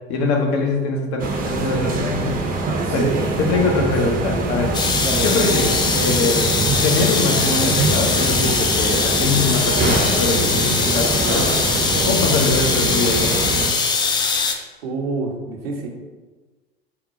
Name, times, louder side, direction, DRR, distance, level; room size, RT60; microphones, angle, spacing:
voice 1, 0.1-2.4 2.9-3.0 3.4-6.5 6.8-11.5 12.0-13.3, left 3 dB, 50° left, 2 dB, 0.8 m, -23 dB
sound 1, 1.2-13.7, right 3 dB, 30° right, 0.6 m, -23 dB
voice 2, 2.7-3.2 5.0-5.4 11.9-12.1 14.8-15.9, right 4 dB, 70° right, 1 dB, 0.7 m, -27 dB
sound 2, 4.7-14.5, left 4 dB, 15° left, 0.4 m, -21 dB
3.9 x 2.2 x 4.0 m, 1.3 s
figure-of-eight pair, 75°, 31 cm